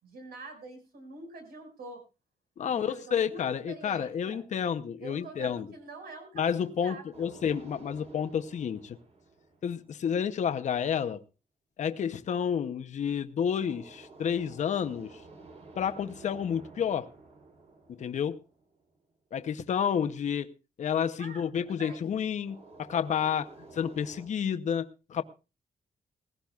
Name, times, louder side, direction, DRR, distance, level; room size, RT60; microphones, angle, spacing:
voice 1, 0.0-2.0 2.6-4.4 5.0-7.4 21.2-22.0, right 3 dB, 80° right, 5.6 m, -46 dB
voice 2, 2.6-5.7 6.3-9.0 9.6-11.2 11.8-15.2 15.8-17.1 17.9-18.4 19.3-20.5 20.8-25.2, left 8 dB, 50° left, 0.7 m, -30 dB
sound 1, 7.1-10.2 13.6-19.0 22.5-24.3, right 3 dB, 45° right, 3.5 m, -52 dB
19.5 x 16.0 x 2.4 m
wide cardioid pair, 155°, 16 cm